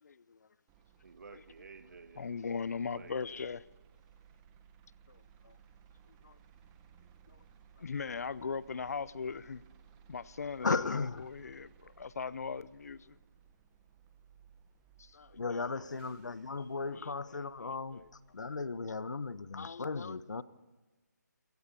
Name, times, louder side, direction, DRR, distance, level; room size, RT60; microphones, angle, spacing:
voice 1, 0.0-0.4 2.2-3.6 5.1-5.6 6.2-6.4 7.3-7.4 7.8-9.6 10.1-13.2 15.0-15.9 16.9-18.1 19.5-20.2, left 5 dB, 55° left, 20 dB, 0.7 m, -40 dB
sound 1, 0.7-18.8, right 8 dB, 15° right, 1.2 m, -61 dB
voice 2, 1.0-2.4 2.9-3.5, right 4 dB, 60° right, 10 dB, 1.8 m, -53 dB
voice 3, 10.6-11.2 15.3-18.0 18.3-20.4, left 4 dB, 70° left, 15 dB, 1.2 m, -36 dB
28.0 x 18.0 x 7.0 m, 1.2 s
figure-of-eight pair, 165°, 10 cm